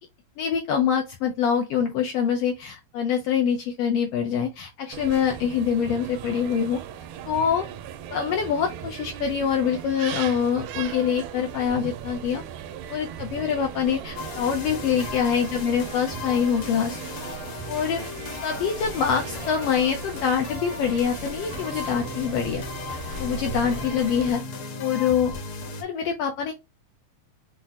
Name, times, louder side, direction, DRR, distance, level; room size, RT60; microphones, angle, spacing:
voice 1, 0.4-6.8 7.2-7.7 8.1-12.4 12.9-17.0 17.7-18.0 18.4-24.4 24.8-25.3 25.8-26.5, left 7 dB, 80° left, 1.4 m, -25 dB
sound 1, 4.9-24.3, right 9 dB, 90° right, 2.0 m, -38 dB
sound 2, 14.2-25.8, left 4 dB, 65° left, 1.5 m, -36 dB
5.9 x 2.1 x 2.7 m
omnidirectional pair, 3.3 m